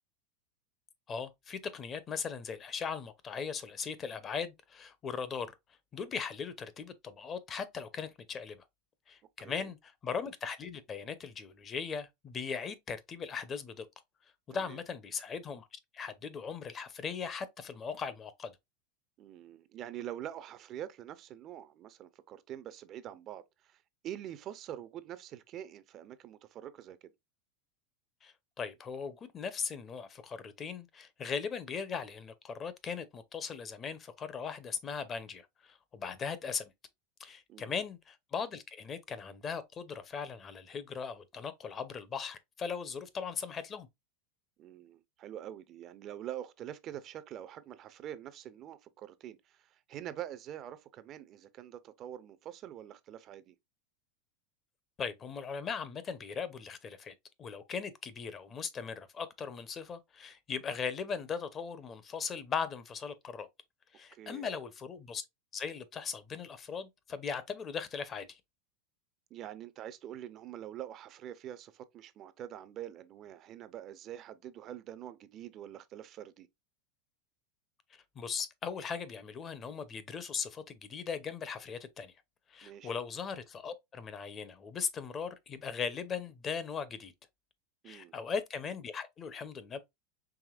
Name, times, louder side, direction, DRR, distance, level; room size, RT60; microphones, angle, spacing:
voice 1, 1.1-5.5 5.9-8.6 9.1-13.9 14.5-18.5 28.2-36.7 37.2-43.9 55.0-57.1 57.4-63.5 63.9-65.2 65.5-68.4 77.9-82.1 82.5-87.1 87.8-89.8, left 6 dB, 25° left, 0.6 m, -39 dB
voice 2, 9.4-9.7 14.6-14.8 19.2-27.1 37.5-37.8 44.6-53.5 64.1-64.5 69.3-76.5 82.6-82.9 87.8-88.1, right 11 dB, 35° right, 0.5 m, -45 dB
4.8 x 3.3 x 2.3 m
supercardioid pair, 135°, 0 cm